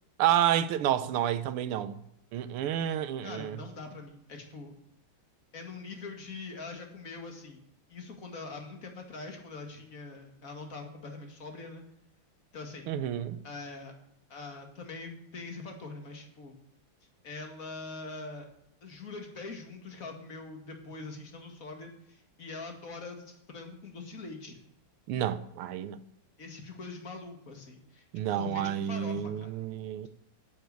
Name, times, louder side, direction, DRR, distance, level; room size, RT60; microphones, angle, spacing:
voice 1, 0.2-2.0 2.3-3.6 12.9-13.4 25.1-26.0 28.1-30.1, right 11 dB, 85° right, 1.7 m, -29 dB
voice 2, 3.2-4.8 5.5-7.6 7.9-11.8 12.5-12.9 13.4-13.9 14.3-16.6 17.2-18.5 18.8-24.6 26.4-29.6, left 3 dB, 40° left, 2.4 m, -43 dB
10.5 x 9.0 x 8.3 m
omnidirectional pair, 2.3 m